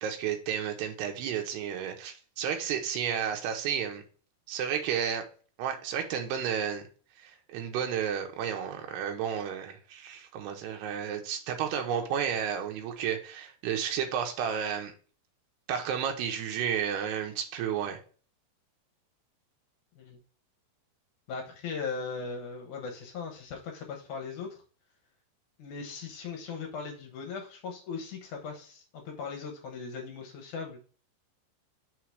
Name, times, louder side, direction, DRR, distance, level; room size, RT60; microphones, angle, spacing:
voice 1, 0.0-4.0 4.5-5.2 5.6-6.8 7.2-14.9 15.7-18.0, right 8 dB, 85° right, 3 dB, 2.9 m, -32 dB
voice 2, 21.3-24.6 25.6-30.8, left 5 dB, 65° left, 2 dB, 2.1 m, -38 dB
6.3 x 3.9 x 4.6 m, 0.39 s
omnidirectional pair, 4.7 m